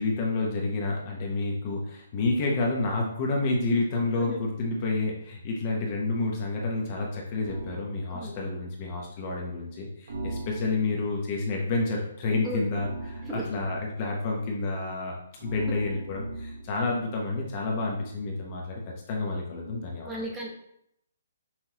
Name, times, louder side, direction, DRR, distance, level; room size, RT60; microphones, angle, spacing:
voice 1, 0.0-18.8 19.1-20.1, left 3 dB, 25° left, -1 dB, 0.7 m, -29 dB
sound 1, 7.4-7.8 10.1-11.0 12.7-13.8 15.4-16.8, right 2 dB, 60° right, 0.9 m, -39 dB
voice 2, 20.0-20.5, right 1 dB, 5° right, -4 dB, 0.8 m, -34 dB
5.7 x 2.9 x 2.8 m, 0.75 s
hypercardioid pair, 170°, 0 cm